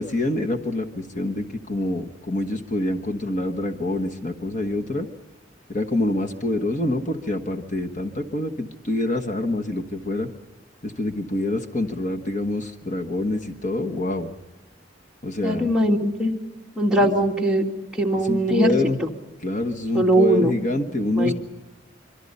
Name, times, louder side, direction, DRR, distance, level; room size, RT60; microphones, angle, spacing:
voice 1, 0.0-5.1 5.7-10.3 10.8-14.3 15.2-15.7 17.0-17.1 18.2-19.0 19.4-21.3, left 1 dB, 40° left, 6 dB, 1.4 m, -26 dB
voice 2, 15.4-16.3 16.8-17.6 18.0-18.7 19.0-19.1 19.9-20.5 21.2-21.3, right 1 dB, 5° right, -1 dB, 2.3 m, -20 dB
26.0 x 24.5 x 5.5 m, 1.1 s
head